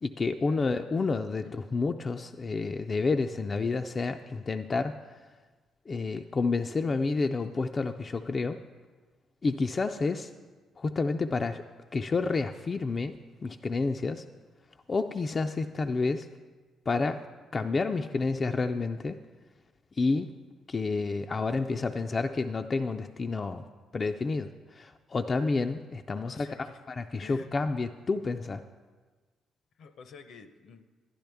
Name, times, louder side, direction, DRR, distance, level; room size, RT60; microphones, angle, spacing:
voice 1, 0.0-4.9 5.9-8.6 9.4-10.3 10.8-11.6 11.9-13.1 13.4-14.2 14.9-16.3 16.9-17.2 17.5-19.2 19.9-20.3 20.7-23.6 23.9-26.5 26.9-28.6, left 3 dB, 35° left, 6 dB, 0.3 m, -29 dB
voice 2, 26.3-26.8 27.2-27.5 29.8-30.9, left 5 dB, 70° left, 9 dB, 0.6 m, -50 dB
11.5 x 10.5 x 3.4 m, 1.4 s
cardioid pair, 90°, 0 cm